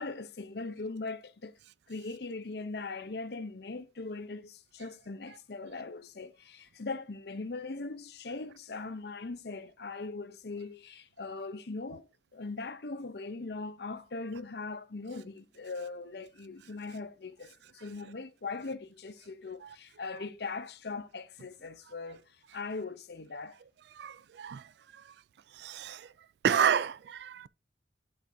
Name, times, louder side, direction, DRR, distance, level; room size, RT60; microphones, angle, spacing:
voice 1, 0.0-1.5 1.9-12.1 12.3-23.6, left 3 dB, 60° left, 0.7 m, -40 dB
voice 2, 23.9-25.1 25.5-26.1 26.4-27.5, right 8 dB, 65° right, 0.3 m, -31 dB
11.5 x 5.3 x 2.7 m
head